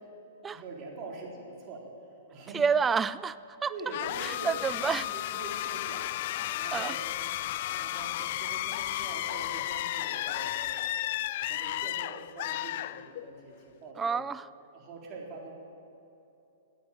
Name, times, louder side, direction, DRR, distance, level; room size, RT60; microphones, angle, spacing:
voice 1, 0.5-2.7 3.7-7.0 7.7-10.9 11.4-14.2 14.7-15.5, right 3 dB, 35° right, -2 dB, 3.8 m, -44 dB
voice 2, 2.5-3.7 4.2-5.1 6.7-7.0 14.0-14.5, right 6 dB, 15° right, 17 dB, 0.3 m, -29 dB
sound 1, 3.9-13.5, left 14 dB, 55° left, 0.4 m, -33 dB
17.0 x 9.1 x 8.9 m, 2.8 s
hypercardioid pair, 140°, 0 cm